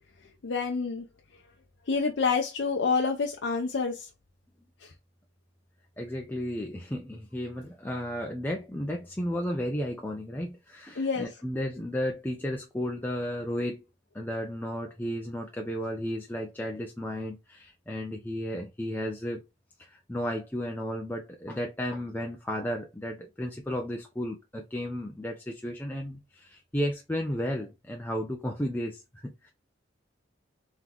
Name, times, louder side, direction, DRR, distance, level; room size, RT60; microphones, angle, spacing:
voice 1, 0.4-1.0 1.9-4.1 4.8-4.9 11.0-11.3, left 4 dB, 70° left, 0.6 m, -28 dB
voice 2, 6.0-13.8 14.1-19.4 19.8-29.5, equal, 10° left, 0.5 m, -33 dB
3.8 x 3.6 x 2.9 m
head